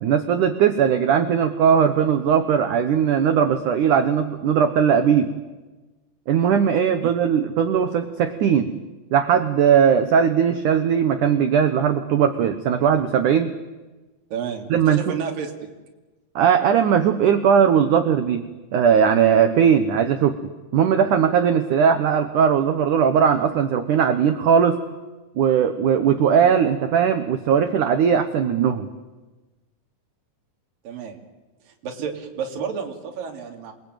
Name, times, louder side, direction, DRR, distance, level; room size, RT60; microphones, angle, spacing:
voice 1, 0.0-5.3 6.3-8.7 9.1-13.5 14.7-15.0 16.4-18.4 18.7-24.8 25.4-28.9, right 7 dB, 85° right, 8 dB, 1.7 m, -19 dB
voice 2, 14.3-15.7 26.4-26.5 30.8-31.2 31.7-33.7, right 6 dB, 50° right, 3 dB, 4.1 m, -31 dB
27.5 x 22.0 x 9.2 m, 1.2 s
omnidirectional pair, 5.4 m